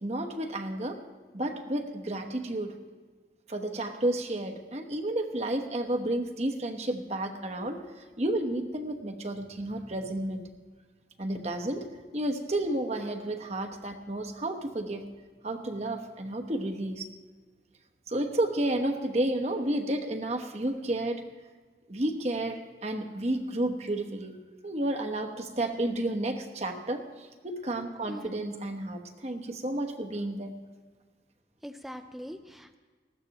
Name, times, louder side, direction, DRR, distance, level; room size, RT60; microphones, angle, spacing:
voice 1, 0.0-1.0 1.3-2.7 3.5-7.8 8.2-10.5 11.2-11.9 12.1-15.0 15.4-17.1 18.1-21.2 21.9-24.4 24.6-30.5, right 1 dB, 40° right, 4 dB, 1.1 m, -31 dB
voice 2, 28.1-28.4 31.6-32.8, equal, ahead, 7 dB, 0.5 m, -42 dB
19.5 x 15.0 x 3.0 m, 1.4 s
head